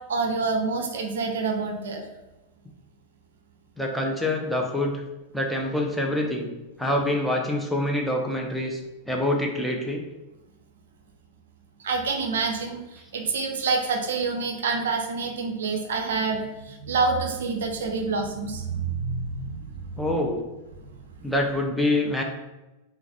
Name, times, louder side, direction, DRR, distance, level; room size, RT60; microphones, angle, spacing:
voice 1, 0.1-2.0 11.8-19.7, right 4 dB, 65° right, 3 dB, 0.4 m, -27 dB
voice 2, 3.8-5.0 5.3-6.5 6.8-10.0 20.0-20.4 21.2-22.2, left 1 dB, ahead, 0 dB, 0.5 m, -26 dB
3.7 x 2.2 x 2.9 m, 1.0 s
figure-of-eight pair, 90°, 0 cm